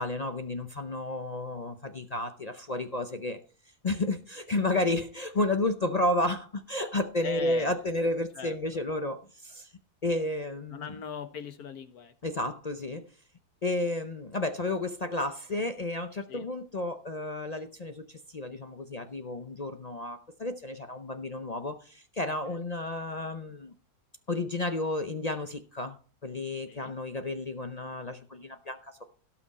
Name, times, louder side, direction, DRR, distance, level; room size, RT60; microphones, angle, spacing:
voice 1, 0.0-3.4 3.8-9.7 10.0-10.9 12.2-13.1 13.6-23.7 24.3-29.0, left 2 dB, 45° left, 8 dB, 0.5 m, -32 dB
voice 2, 4.6-5.0 7.2-7.8 8.3-8.6 10.7-12.1 16.3-16.5 22.5-22.6 26.7-26.9, left 7 dB, 70° left, 9 dB, 1.6 m, -41 dB
17.5 x 5.9 x 4.1 m, 0.39 s
omnidirectional pair, 1.7 m